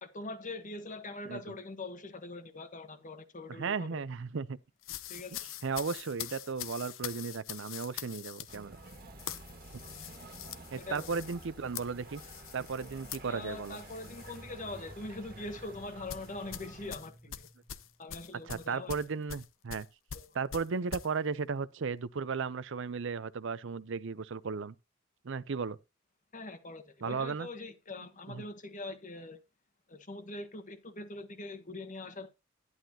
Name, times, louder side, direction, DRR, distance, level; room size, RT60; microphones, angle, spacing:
voice 1, 0.0-4.0 5.1-5.4 10.8-11.1 13.3-17.5 18.0-19.0 20.1-20.4 26.3-29.4 29.9-32.3, left 2 dB, 40° left, 1.4 m, -43 dB
voice 2, 3.6-4.6 5.6-8.8 10.7-12.2 12.5-13.8 18.5-19.9 20.3-24.7 25.2-25.8 27.0-27.5 28.3-28.4, right 5 dB, 65° right, 0.6 m, -35 dB
sound 1, 4.8-14.4 14.8-15.0 16.1-21.1, left 10 dB, 80° left, 0.8 m, -44 dB
sound 2, 8.5-17.0, right 2 dB, 50° right, 1.8 m, -51 dB
sound 3, 13.5-18.1, right 1 dB, 10° right, 0.7 m, -55 dB
11.5 x 11.0 x 2.8 m
head